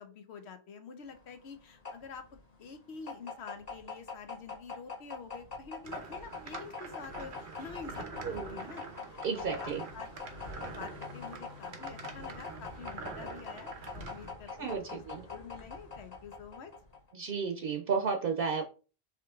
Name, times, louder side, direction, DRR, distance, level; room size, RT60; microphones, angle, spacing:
voice 1, 0.0-2.3 2.6-8.8 9.3-10.1 10.4-15.0 15.3-16.7, left 5 dB, 90° left, 7 dB, 1.0 m, -47 dB
sound 1, 1.1-17.1, left 4 dB, 40° left, 0.9 m, -44 dB
sound 2, 5.8-14.3, right 4 dB, 90° right, 1.1 m, -46 dB
voice 2, 8.2-8.6 9.2-9.8 14.6-15.2 17.1-18.6, right 5 dB, 60° right, 3 dB, 0.8 m, -33 dB
4.8 x 3.0 x 3.5 m, 0.36 s
omnidirectional pair, 1.1 m